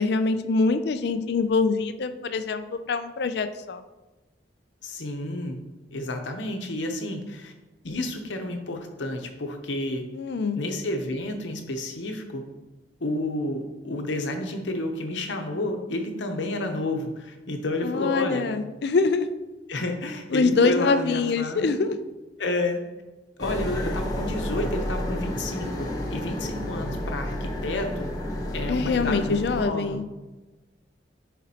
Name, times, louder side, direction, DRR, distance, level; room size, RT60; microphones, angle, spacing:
voice 1, 0.0-3.8 10.1-10.6 17.8-19.3 20.3-22.0 28.7-30.0, left 4 dB, 60° left, 9 dB, 0.4 m, -24 dB
voice 2, 4.8-5.6 5.9-7.5 7.8-10.0 10.5-12.4 13.0-18.5 19.7-21.7 22.4-22.8 23.4-28.1 28.5-30.0, left 1 dB, 85° left, 4 dB, 0.9 m, -30 dB
sound 1, 23.4-29.7, left 1 dB, 20° left, 0.9 m, -31 dB
10.0 x 4.1 x 2.9 m, 1.1 s
head